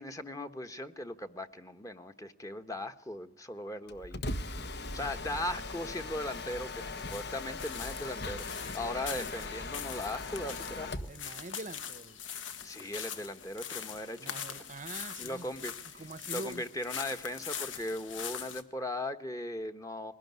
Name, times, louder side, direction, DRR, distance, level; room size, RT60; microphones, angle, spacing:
voice 1, 0.0-4.2 4.9-11.1 12.6-14.4 15.2-16.0 16.3-20.1, left 1 dB, 15° left, 1.2 m, -38 dB
Mechanisms, 3.9-11.2, left 3 dB, 60° left, 1.4 m, -39 dB
sound 1, 5.2-18.6, left 8 dB, 75° left, 1.7 m, -43 dB
voice 2, 11.1-12.2 14.2-16.6, right 2 dB, 40° right, 0.8 m, -44 dB
21.5 x 17.5 x 9.5 m
head